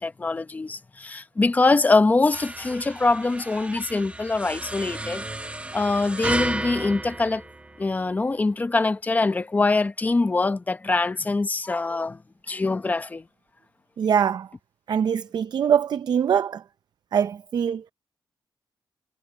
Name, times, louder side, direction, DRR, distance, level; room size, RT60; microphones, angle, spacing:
voice 1, 0.0-5.2 5.7-7.4 7.8-12.2 12.5-13.2, left 3 dB, 20° left, 0.7 m, -23 dB
sound 1, 2.3-8.1, right 2 dB, 15° right, 1.8 m, -33 dB
voice 2, 14.0-14.5 14.9-16.6 17.1-17.9, right 8 dB, 60° right, 0.5 m, -23 dB
wide cardioid pair, 155°, 8 cm